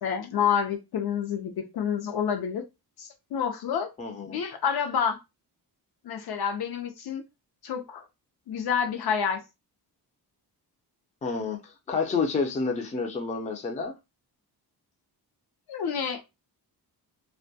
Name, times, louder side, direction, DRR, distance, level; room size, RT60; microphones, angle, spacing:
voice 1, 0.0-2.6 3.0-3.9 4.3-5.2 6.0-7.2 7.6-8.0 8.5-9.4 15.7-16.2, left 7 dB, 70° left, 0.6 m, -28 dB
voice 2, 4.0-4.4 11.2-13.9, left 4 dB, 20° left, 0.4 m, -29 dB
2.2 x 2.1 x 2.6 m
cardioid pair, 125°, 40 cm